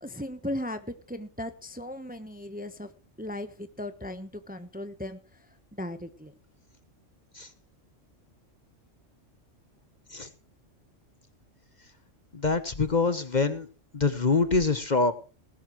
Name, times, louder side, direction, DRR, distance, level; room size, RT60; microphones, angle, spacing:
voice 1, 0.0-2.9 3.2-6.3, left 1 dB, 10° right, 10 dB, 0.9 m, -37 dB
voice 2, 12.3-13.7 13.9-15.1, left 4 dB, 40° left, 12 dB, 1.1 m, -25 dB
19.0 x 11.0 x 3.1 m, 0.35 s
omnidirectional pair, 1.3 m